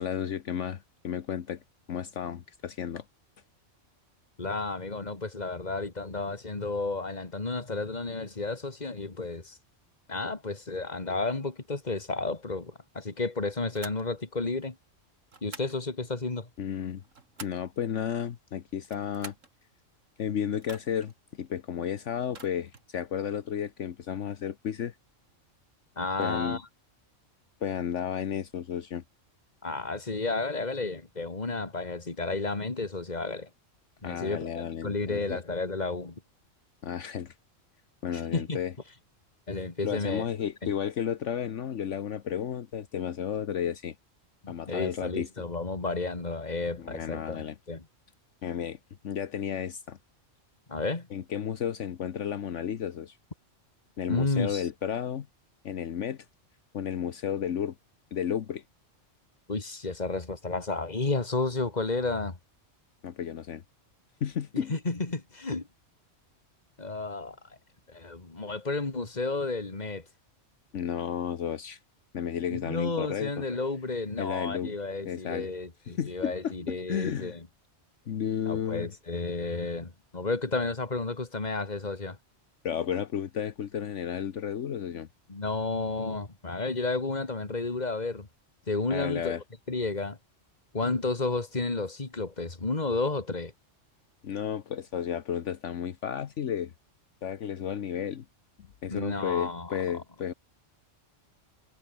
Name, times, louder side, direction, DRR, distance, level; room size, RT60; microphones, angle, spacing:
voice 1, 0.0-1.6 1.9-3.0 16.6-17.0 17.4-19.3 20.2-21.1 21.4-24.9 26.2-26.6 27.6-29.0 34.0-35.4 36.8-37.3 38.0-38.7 39.8-43.9 44.5-45.3 46.8-47.6 48.4-48.8 49.0-50.0 51.1-53.2 54.0-55.3 55.6-56.3 56.7-57.7 58.1-58.6 63.0-63.6 64.2-64.7 70.7-71.8 72.1-73.3 74.2-74.7 75.0-75.5 75.9-77.4 78.1-78.9 82.6-85.1 88.9-89.4 94.2-96.7 97.2-98.2 98.8-100.3, left 8 dB, 70° left, 1.3 m, -32 dB
voice 2, 4.4-9.6 10.1-14.8 15.4-16.5 26.0-26.6 29.6-33.5 34.0-36.2 38.1-38.6 39.5-40.2 40.6-40.7 44.4-47.9 50.7-51.1 54.1-54.7 59.5-62.4 64.5-65.7 66.8-67.4 67.9-70.0 72.5-77.5 78.5-82.2 85.3-88.3 88.7-90.2 90.7-93.5 98.9-99.7, left 3 dB, 35° left, 2.4 m, -32 dB
sound 1, 13.7-14.1 15.3-15.8 16.8-17.7 18.8-19.5 20.6-21.1 22.2-22.9, right 4 dB, 80° right, 2.9 m, -47 dB
omnidirectional pair, 1.3 m